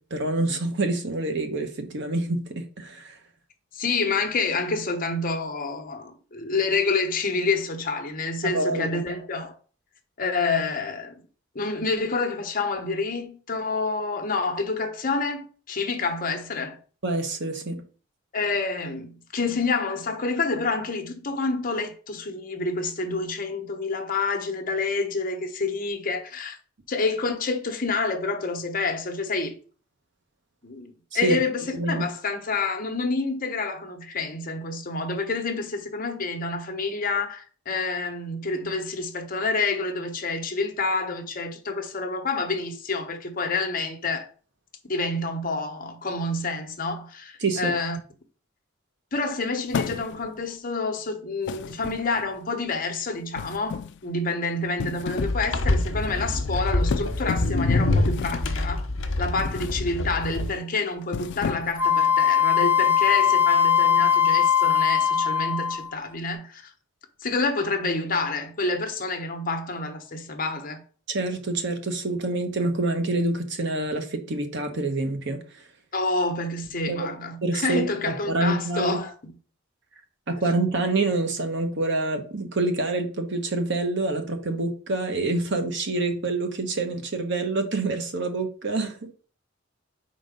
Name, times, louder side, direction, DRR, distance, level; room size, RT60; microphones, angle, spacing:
voice 1, 0.1-3.2 8.4-9.0 17.0-17.8 31.1-31.4 31.7-32.1 47.4-47.8 71.1-75.4 76.9-77.1 77.4-79.0 80.3-89.1, right 2 dB, 60° right, 1.0 m, -27 dB
voice 2, 3.7-9.5 10.2-11.2 11.5-16.8 18.3-26.6 26.9-29.5 30.6-44.3 44.9-48.0 49.1-58.9 59.2-66.7 67.2-70.8 75.9-79.3, left 3 dB, 45° left, 1.0 m, -28 dB
sound 1, 49.7-50.4 51.5-52.4 53.3-54.0 54.6-55.5 55.8-56.1 56.9-57.6 58.0-58.6 59.4-59.8 60.2-60.5 61.0-61.9, left 6 dB, 60° left, 0.3 m, -33 dB
sound 2, 55.2-60.5, left 2 dB, 85° left, 1.0 m, -25 dB
Wind instrument woodwind instrument, 61.8-65.9, left 8 dB, 10° right, 0.5 m, -20 dB
5.0 x 3.9 x 5.2 m
head